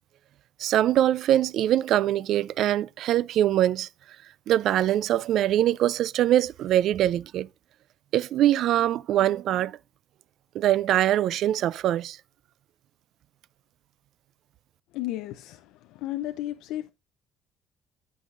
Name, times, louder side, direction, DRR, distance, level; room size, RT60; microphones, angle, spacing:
voice 1, 0.6-3.9 4.5-7.5 8.1-9.7 10.6-12.2, right 12 dB, 60° right, 0.4 m, -23 dB
voice 2, 14.9-15.6 15.9-16.9, left 14 dB, 90° left, 0.5 m, -33 dB
15.5 x 5.5 x 2.5 m
cardioid pair, 140°, 0 cm